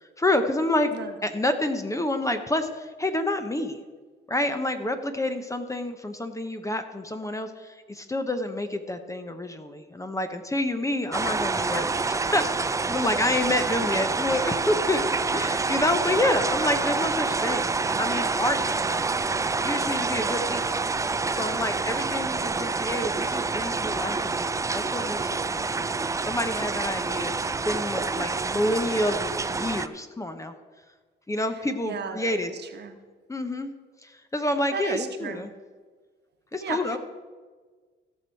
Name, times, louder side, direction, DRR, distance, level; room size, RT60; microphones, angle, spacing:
voice 1, 0.0-0.9 1.2-3.8 4.3-15.0 15.3-19.1 19.6-20.8 21.3-25.7 26.2-30.5 31.3-32.5 33.3-33.7 34.0-35.5 36.5-37.0, left 1 dB, 15° left, 8 dB, 0.9 m, -28 dB
sound 1, 11.1-29.9, right 4 dB, 15° right, 0.4 m, -27 dB
voice 2, 31.8-32.9 34.7-35.5 36.6-37.0, right 6 dB, 60° right, 6 dB, 1.2 m, -35 dB
16.0 x 6.3 x 4.6 m, 1.5 s
cardioid pair, 90°, 20 cm